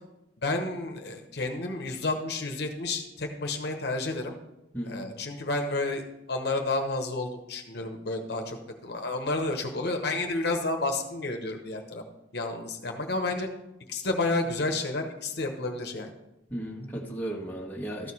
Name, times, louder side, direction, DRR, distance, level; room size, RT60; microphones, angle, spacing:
voice 1, 0.4-4.3 4.8-8.6 8.8-12.0 12.3-13.5 13.9-16.1, left 2 dB, 65° left, 4 dB, 1.0 m, -30 dB
voice 2, 4.7-5.1 16.5-18.1, right 1 dB, 10° left, -2 dB, 1.4 m, -35 dB
13.5 x 4.8 x 5.5 m, 0.94 s
head